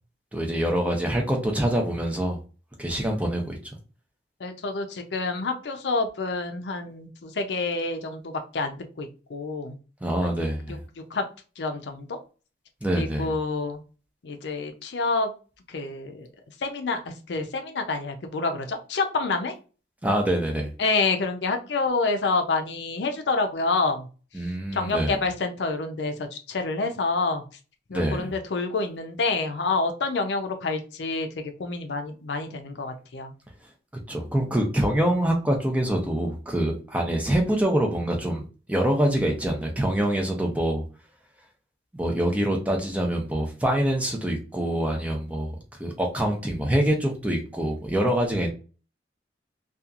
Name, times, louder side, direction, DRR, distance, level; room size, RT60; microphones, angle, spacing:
voice 1, 0.3-2.4 2.8-3.6 10.0-10.8 12.8-13.3 20.0-20.7 24.3-25.2 27.9-28.3 34.1-38.4 38.7-40.8 41.9-48.5, right 1 dB, 10° right, 1 dB, 0.5 m, -25 dB
voice 2, 4.4-9.8 10.2-10.3 11.1-11.2 11.6-12.2 13.0-13.8 14.2-15.3 15.7-16.3 16.6-17.0 17.3-19.5 20.8-24.1 24.7-27.4 27.9-33.3, left 3 dB, 75° left, 6 dB, 0.5 m, -28 dB
2.8 x 2.4 x 2.4 m, 0.35 s
head